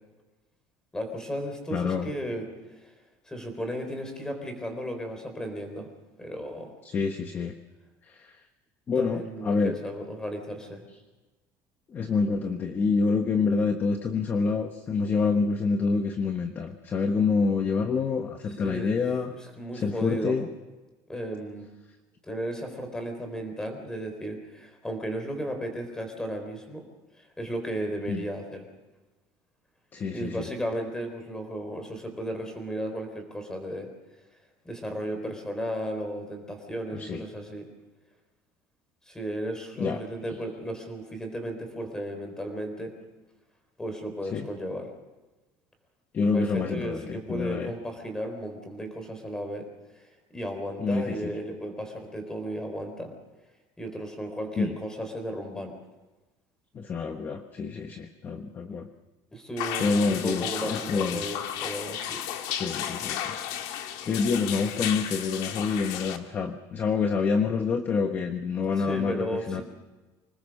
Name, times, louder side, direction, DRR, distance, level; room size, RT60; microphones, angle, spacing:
voice 1, 0.9-2.5 2.8-2.9 3.2-5.9 6.2-6.8 9.0-10.8 18.6-19.0 19.6-20.4 21.1-21.7 22.2-26.8 27.2-28.6 30.1-33.9 34.6-37.7 39.0-42.9 43.8-44.9 46.3-49.7 49.9-53.1 53.8-55.7 59.3-62.2 68.8-69.6, right 1 dB, 5° left, 5 dB, 3.9 m, -34 dB
voice 2, 1.7-2.1 6.8-7.5 8.0-8.4 8.9-9.8 11.9-19.3 19.7-20.5 28.1-28.2 29.9-30.5 36.9-37.2 39.8-40.0 44.3-44.5 46.1-47.7 50.8-51.3 54.6-54.8 56.7-58.9 59.8-61.2 62.5-63.4 63.8-69.6, left 4 dB, 25° left, 6 dB, 1.2 m, -27 dB
sound 1, 59.6-66.2, left 10 dB, 70° left, 2.1 m, -33 dB
26.0 x 19.5 x 6.5 m, 1.2 s
cardioid pair, 175°, 9 cm